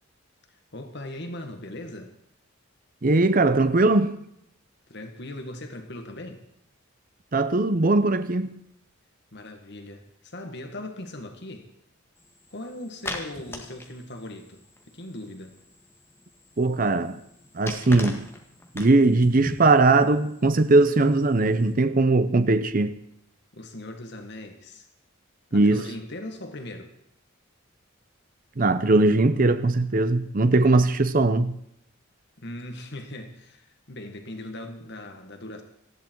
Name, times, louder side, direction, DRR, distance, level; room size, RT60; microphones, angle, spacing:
voice 1, 0.7-2.1 4.9-6.4 9.3-11.7 12.5-15.6 23.5-24.9 25.5-26.9 32.4-35.6, left 1 dB, 55° left, 1.7 m, -39 dB
voice 2, 3.0-4.2 7.3-8.5 16.6-17.2 17.5-18.3 18.7-22.9 25.5-25.8 28.6-31.6, right 2 dB, 40° right, 0.7 m, -20 dB
sound 1, 12.2-21.7, left 1 dB, 10° left, 1.9 m, -42 dB
19.0 x 14.0 x 4.6 m
head